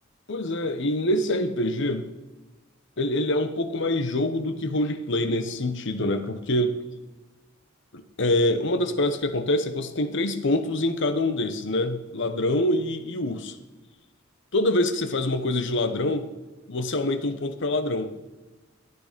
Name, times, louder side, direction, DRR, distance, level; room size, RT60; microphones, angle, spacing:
voice 1, 0.3-2.0 3.0-6.8 7.9-13.6 14.5-16.3 16.7-18.1, left 1 dB, 60° left, 10 dB, 1.0 m, -25 dB
13.5 x 9.2 x 5.1 m, 1.1 s
head